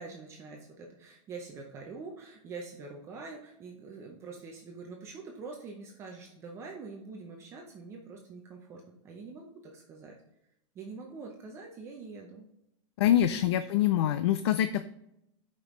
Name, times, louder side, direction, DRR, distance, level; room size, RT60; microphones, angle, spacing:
voice 1, 0.0-9.5 9.7-10.1 10.7-12.4 13.2-13.6, right 4 dB, 15° right, 1 dB, 0.6 m, -45 dB
voice 2, 13.0-14.8, left 11 dB, 55° left, 12 dB, 0.4 m, -25 dB
12.0 x 5.2 x 3.1 m, 0.84 s
supercardioid pair, 175°, 17 cm